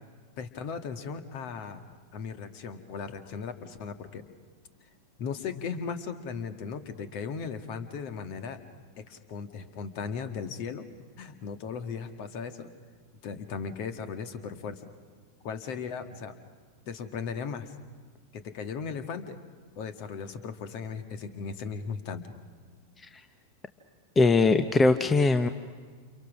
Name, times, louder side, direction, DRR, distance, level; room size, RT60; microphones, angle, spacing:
voice 1, 0.4-1.8 2.1-4.2 5.2-8.6 9.0-10.8 11.2-12.7 13.2-14.9 15.4-16.3 16.9-17.7 18.3-19.4 19.7-22.2, left 6 dB, 45° left, 9 dB, 1.7 m, -37 dB
voice 2, 24.2-25.5, left 3 dB, 15° left, 9 dB, 0.9 m, -21 dB
29.0 x 28.5 x 6.2 m, 1.5 s
figure-of-eight pair, 90°, 0 cm